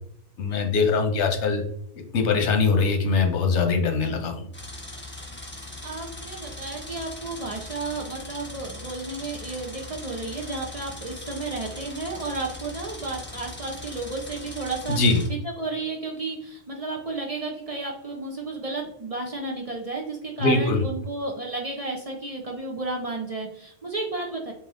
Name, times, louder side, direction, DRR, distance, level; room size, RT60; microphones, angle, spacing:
voice 1, 0.4-1.6 2.1-4.4 14.9-15.2 20.4-20.8, left 4 dB, 85° left, 4 dB, 1.1 m, -22 dB
sound 1, 4.5-15.3, left 2 dB, 10° left, 0.8 m, -40 dB
voice 2, 5.8-15.0 15.3-24.5, right 3 dB, 40° right, -1 dB, 0.6 m, -32 dB
4.5 x 2.7 x 3.6 m, 0.73 s
omnidirectional pair, 1.2 m